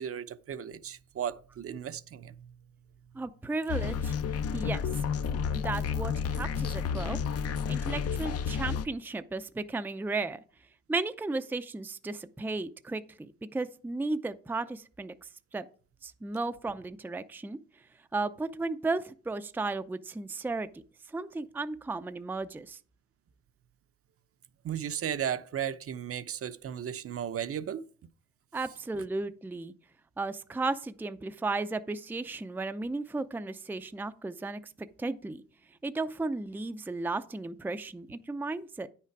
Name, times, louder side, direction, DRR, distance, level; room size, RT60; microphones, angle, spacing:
voice 1, 0.0-2.5 24.6-27.9, right 9 dB, 50° right, 0.7 m, -35 dB
voice 2, 3.1-4.2 4.5-4.8 5.5-7.2 7.7-10.4 10.9-15.7 16.0-17.6 18.1-20.8 21.1-22.8 28.5-29.7 30.2-35.4 35.8-38.9, right 3 dB, 5° right, 0.5 m, -34 dB
sound 1, 3.7-8.9, left 6 dB, 50° left, 0.7 m, -31 dB
9.5 x 5.8 x 4.6 m
cardioid pair, 90°, 30 cm